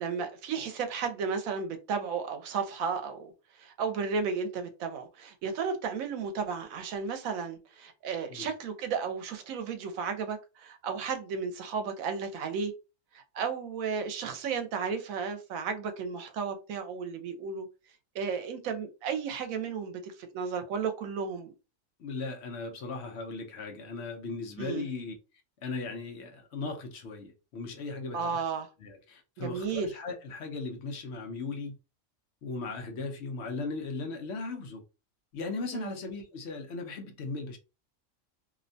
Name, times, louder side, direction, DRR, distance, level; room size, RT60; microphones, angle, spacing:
voice 1, 0.0-3.3 3.6-12.7 13.1-17.7 18.1-21.5 24.6-24.9 28.1-28.7 29.4-29.9 35.7-36.0, right 5 dB, 85° right, 1.0 m, -33 dB
voice 2, 22.0-25.1 25.6-28.4 28.8-31.8 32.4-34.8 35.3-37.6, left 3 dB, 65° left, 0.8 m, -37 dB
2.7 x 2.1 x 2.6 m
omnidirectional pair, 1.4 m